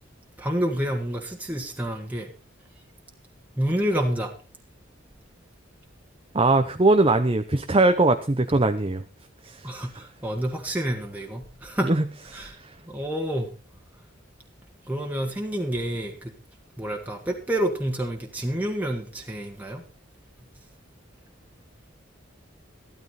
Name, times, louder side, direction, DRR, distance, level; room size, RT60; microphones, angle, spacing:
voice 1, 0.4-2.3 3.6-4.3 9.6-11.9 12.3-12.5 12.9-13.5 14.9-16.3 16.8-19.8, right 1 dB, 10° right, 1 dB, 1.7 m, -28 dB
voice 2, 6.3-9.0 11.8-12.0 12.3-12.5, right 2 dB, 25° right, 8 dB, 0.7 m, -20 dB
14.0 x 12.5 x 4.2 m, 0.32 s
head